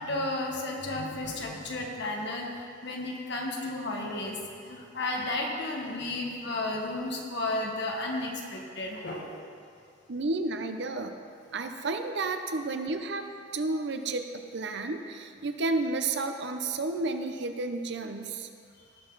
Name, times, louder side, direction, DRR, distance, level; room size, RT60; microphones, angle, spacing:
voice 1, 0.0-9.5, left 2 dB, 60° left, 0 dB, 1.5 m, -33 dB
voice 2, 10.1-11.2 11.5-13.3 13.5-14.3 14.5-18.5, right 3 dB, 60° right, 7 dB, 0.7 m, -31 dB
18.0 x 6.3 x 4.0 m, 2.4 s
head